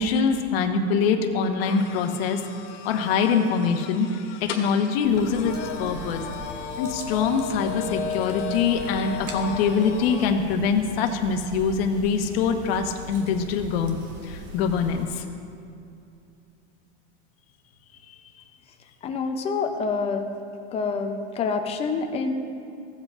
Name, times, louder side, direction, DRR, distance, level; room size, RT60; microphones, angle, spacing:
voice 1, 0.0-2.4 2.8-6.2 6.8-14.0 14.2-15.2, left 5 dB, 55° left, 5 dB, 1.1 m, -24 dB
sound 1, 1.6-10.3, left 6 dB, 90° left, 1.7 m, -35 dB
sound 2, 5.0-15.0, right 1 dB, 50° right, 1.5 m, -41 dB
voice 2, 19.0-20.3 20.7-22.3, left 4 dB, 20° left, 5 dB, 0.5 m, -27 dB
17.0 x 7.8 x 2.5 m, 2.5 s
supercardioid pair, 160°, 35 cm